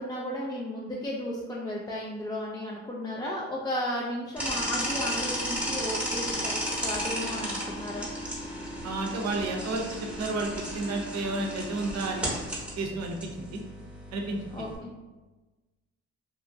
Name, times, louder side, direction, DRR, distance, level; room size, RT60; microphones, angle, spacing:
voice 1, 0.0-8.1 14.5-14.9, equal, 15° left, -4 dB, 0.4 m, -34 dB
sound 1, 4.4-14.8, equal, 5° right, 0.8 m, -34 dB
voice 2, 8.8-9.8 10.2-10.5 10.7-12.3 12.8-13.6 14.1-14.4, right 2 dB, 60° right, 2 dB, 0.6 m, -31 dB
2.8 x 2.3 x 2.6 m, 1.2 s
cardioid pair, 90°, 30 cm